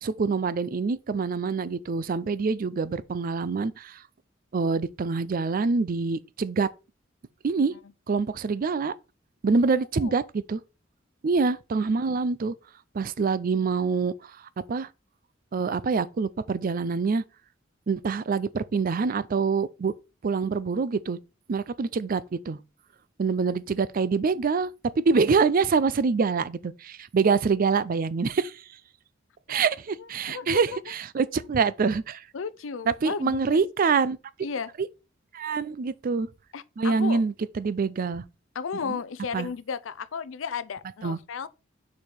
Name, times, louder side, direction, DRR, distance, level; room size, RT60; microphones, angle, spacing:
voice 1, 0.0-4.0 4.5-6.7 7.4-7.7 8.1-8.9 9.4-10.6 11.2-12.5 12.9-14.3 14.7-14.9 15.5-17.2 17.9-19.9 20.2-21.2 21.5-22.6 23.2-24.7 25.0-28.6 29.5-32.2 32.9-34.2 35.3-36.3 36.8-38.2 38.9-39.0 39.3-39.5 41.0-41.2, right 4 dB, 45° right, 0.4 m, -25 dB
voice 2, 30.0-30.8 32.3-33.6 34.4-34.7 36.5-37.2 38.5-41.5, left 6 dB, 80° left, 0.5 m, -34 dB
4.8 x 4.5 x 5.2 m
head